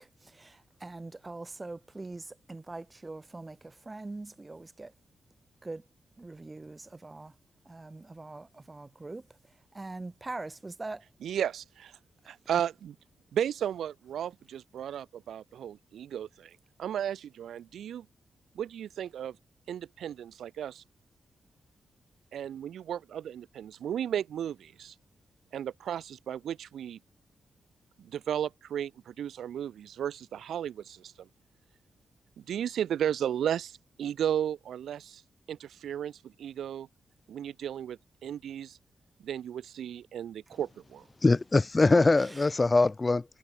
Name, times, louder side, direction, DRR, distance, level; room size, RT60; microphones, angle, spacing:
voice 1, 0.0-4.9 5.6-5.8 6.2-7.3 7.7-9.2 9.7-11.0 12.5-12.6 41.8-42.0, right 2 dB, 25° right, 5.1 m, -42 dB
voice 2, 11.2-11.9 12.3-12.9 13.3-18.1 18.5-19.4 19.7-20.8 22.3-24.9 25.5-27.0 28.0-31.3 32.4-35.2 35.5-36.9 37.3-38.8 39.2-41.0, right 9 dB, 85° right, 5.9 m, -34 dB
voice 3, 41.2-43.2, left 3 dB, 25° left, 2.8 m, -22 dB
cardioid pair, 85°, 0 cm